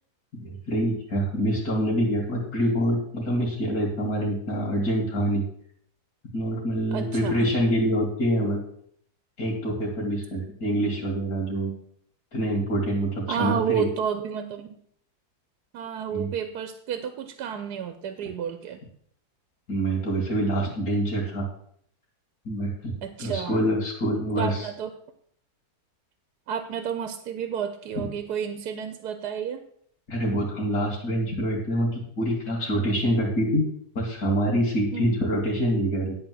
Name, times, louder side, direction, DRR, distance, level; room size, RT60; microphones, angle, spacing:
voice 1, 0.4-5.4 6.3-8.6 9.4-11.7 12.3-13.8 16.1-16.3 19.7-21.5 22.4-24.7 30.1-33.7 33.9-36.1, right 1 dB, 75° left, -5 dB, 2.6 m, -26 dB
voice 2, 6.9-7.4 13.3-14.8 15.7-18.8 23.0-23.7 24.4-24.9 26.5-29.6 34.9-35.1, right 8 dB, 85° right, 9 dB, 1.3 m, -31 dB
10.5 x 4.5 x 7.5 m, 0.65 s
omnidirectional pair, 1.7 m